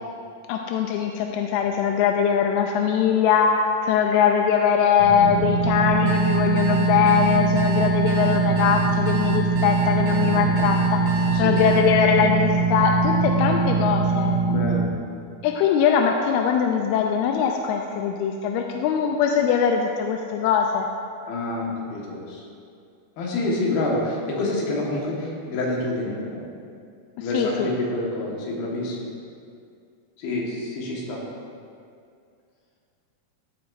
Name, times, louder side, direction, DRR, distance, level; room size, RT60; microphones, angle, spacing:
voice 1, 0.5-14.3 15.4-20.9 27.2-27.7, left 7 dB, 90° left, 3 dB, 2.6 m, -21 dB
sound 1, 5.0-14.8, right 4 dB, 60° left, 3.2 m, -22 dB
sound 2, 6.1-11.8, equal, 85° right, 3.0 m, -34 dB
voice 2, 14.5-15.0 21.3-22.4 23.2-26.5 27.2-29.0 30.2-31.2, left 2 dB, 75° left, -3 dB, 3.4 m, -27 dB
16.0 x 7.9 x 2.6 m, 2.4 s
omnidirectional pair, 4.5 m